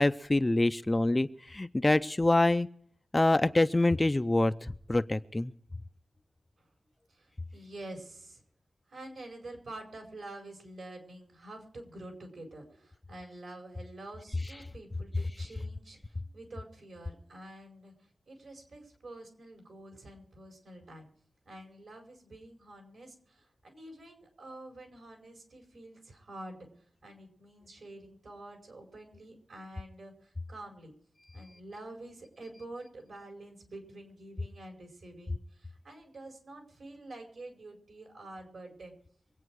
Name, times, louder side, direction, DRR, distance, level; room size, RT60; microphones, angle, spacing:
voice 1, 0.0-2.7 3.1-5.5, left 2 dB, 25° left, 11 dB, 0.6 m, -26 dB
voice 2, 7.1-8.4 8.9-21.1 21.4-26.7 27.0-30.9 31.3-38.9, right 1 dB, 70° right, 3 dB, 4.9 m, -48 dB
24.5 x 8.9 x 4.7 m, 0.66 s
wide cardioid pair, 95°, 0 cm